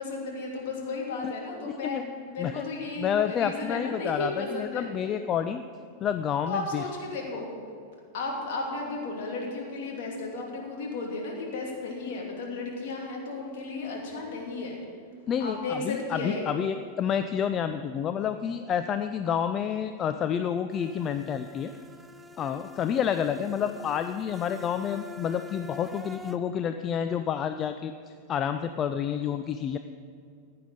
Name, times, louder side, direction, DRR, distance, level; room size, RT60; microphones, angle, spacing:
voice 1, 0.0-4.9 6.5-7.5 8.1-14.8 15.4-16.5, left 3 dB, 50° left, -1 dB, 2.8 m, -34 dB
voice 2, 1.7-2.0 2.4-2.6 3.0-5.6 6.0-6.8 15.3-21.7 22.4-27.9 28.3-29.8, left 8 dB, 30° left, 9 dB, 0.4 m, -29 dB
sound 1, 20.7-26.4, left 2 dB, 5° right, 0.7 m, -46 dB
15.0 x 9.7 x 5.2 m, 2.3 s
figure-of-eight pair, 90°, 0 cm